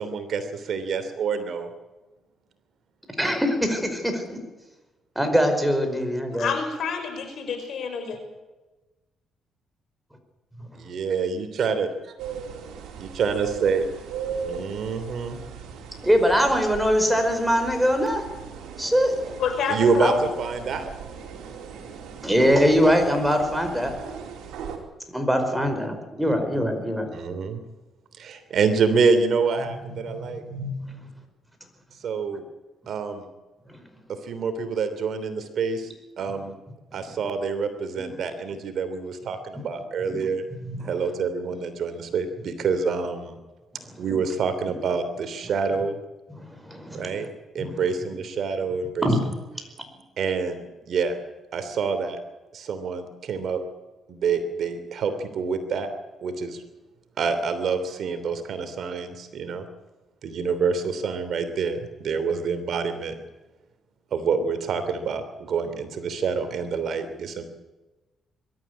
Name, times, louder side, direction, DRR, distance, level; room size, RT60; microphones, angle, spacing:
voice 1, 0.0-1.7 10.8-11.9 12.9-13.9 14.3-15.4 19.7-20.1 20.4-20.9 26.2-26.8 27.1-27.6 28.2-30.4 32.0-32.4 32.9-33.2 34.1-35.9 36.2-36.5 36.9-40.4 40.8-43.4 44.0-46.0 46.9-47.3 47.5-49.1 50.2-51.2 51.5-52.2 52.5-53.6 54.1-55.9 56.2-56.6 57.2-59.6 60.2-63.1 64.1-67.4, right 5 dB, 65° right, 9 dB, 3.2 m, -27 dB
voice 2, 3.2-4.4 5.1-6.5 16.0-18.2 18.8-19.4 20.0-20.1 22.2-23.9 25.1-27.1 30.2-31.0 38.1-38.2 40.1-40.2 40.6-40.9 43.9-44.2 46.6-47.2 47.6-47.8 49.0-49.2, equal, 5° right, 6 dB, 5.1 m, -23 dB
voice 3, 6.4-8.2 19.4-20.2, left 6 dB, 65° left, 6 dB, 5.5 m, -28 dB
sound 1, 12.2-24.8, right 7 dB, 85° right, 3.9 m, -38 dB
22.0 x 13.5 x 9.9 m, 1.1 s
cardioid pair, 90°, 0 cm